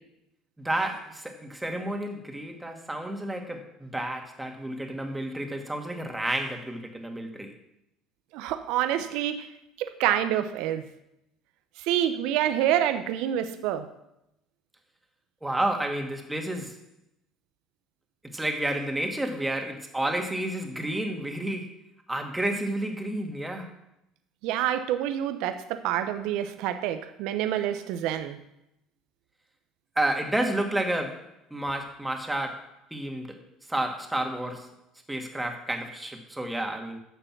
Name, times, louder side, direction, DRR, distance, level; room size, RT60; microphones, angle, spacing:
voice 1, 0.6-7.5 15.4-16.8 18.3-21.8 22.1-23.7 30.0-33.4 33.7-34.7 35.1-37.0, right 1 dB, 10° right, 3 dB, 2.1 m, -30 dB
voice 2, 8.3-9.5 9.8-10.8 11.8-13.8 24.4-28.4, right 11 dB, 70° right, 9 dB, 0.9 m, -27 dB
10.0 x 6.8 x 6.1 m, 0.84 s
hypercardioid pair, 70°, 0 cm